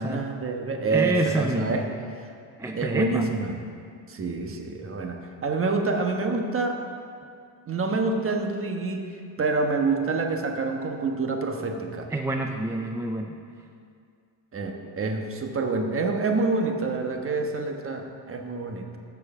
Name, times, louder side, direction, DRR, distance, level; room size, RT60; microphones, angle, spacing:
voice 1, 0.0-1.9 2.7-3.5 4.1-6.8 7.7-9.1 9.4-12.1 14.5-19.0, right 3 dB, 30° right, 3 dB, 1.2 m, -27 dB
voice 2, 0.9-1.8 2.6-3.3 12.1-13.4, right 2 dB, 10° right, 3 dB, 0.3 m, -27 dB
14.5 x 4.8 x 6.7 m, 2.3 s
cardioid pair, 120°, 45 cm